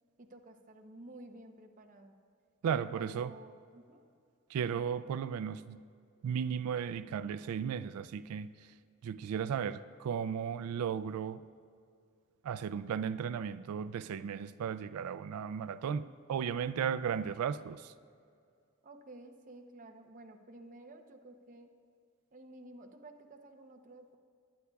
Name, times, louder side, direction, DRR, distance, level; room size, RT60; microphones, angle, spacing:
voice 1, 0.2-2.2 2.7-4.0 18.8-21.7 22.3-24.2, right 2 dB, 35° right, 4 dB, 0.7 m, -52 dB
voice 2, 2.6-3.3 4.5-5.8 6.2-8.7 9.0-11.4 12.4-17.9, right 7 dB, 90° right, 14 dB, 0.3 m, -35 dB
19.5 x 9.5 x 2.3 m, 2.3 s
head